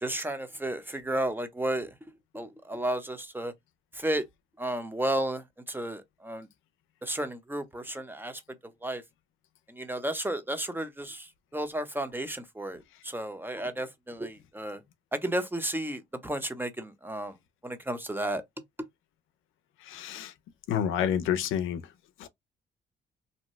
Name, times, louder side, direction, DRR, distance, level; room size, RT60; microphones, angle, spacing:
voice 1, 0.0-1.9 2.3-3.5 4.0-4.2 4.6-6.5 7.0-8.4 8.8-9.0 9.7-11.3 11.5-14.8 15.1-17.3 17.6-18.4, right 1 dB, 10° right, 0.8 m, -33 dB
voice 2, 19.9-20.3 20.7-21.8 22.2-22.3, left 9 dB, 80° left, 0.5 m, -28 dB
2.7 x 2.2 x 3.1 m
supercardioid pair, 65°, 20 cm